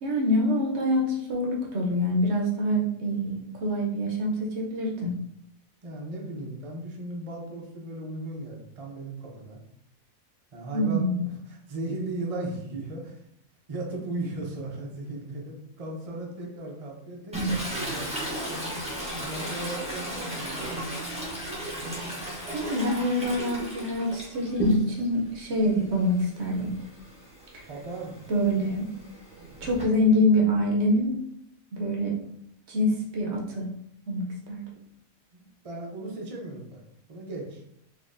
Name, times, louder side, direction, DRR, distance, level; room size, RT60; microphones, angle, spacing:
voice 1, 0.0-5.1 10.7-11.2 22.5-26.7 27.5-27.7 28.3-28.8 29.6-31.2 31.7-32.2 32.7-33.7 34.1-34.6, left 1 dB, 60° right, -1 dB, 0.9 m, -25 dB
voice 2, 5.8-9.6 10.5-13.2 13.7-18.1 19.2-20.8 27.7-28.2 35.3-36.8 37.1-37.6, right 2 dB, 40° right, -1 dB, 0.5 m, -36 dB
Toilet flush, 17.3-25.1 25.5-29.8, right 1 dB, 5° right, 0.7 m, -34 dB
4.1 x 2.9 x 2.5 m, 0.73 s
omnidirectional pair, 1.4 m